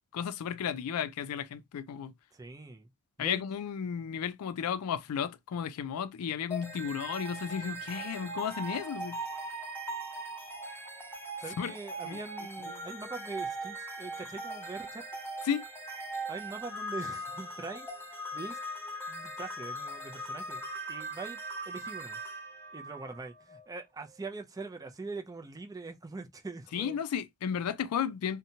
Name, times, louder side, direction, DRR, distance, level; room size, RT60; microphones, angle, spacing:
voice 1, 0.1-2.1 3.2-9.3 11.6-11.7 12.0-12.2 15.5-15.6 26.7-28.4, left 8 dB, 85° left, 0.4 m, -33 dB
voice 2, 2.3-2.9 3.2-3.4 11.4-15.0 16.3-18.6 19.1-22.2 22.7-27.0, right 3 dB, 15° right, 0.4 m, -43 dB
sound 1, 6.5-23.7, right 1 dB, 10° left, 0.7 m, -40 dB
2.7 x 2.2 x 2.7 m
head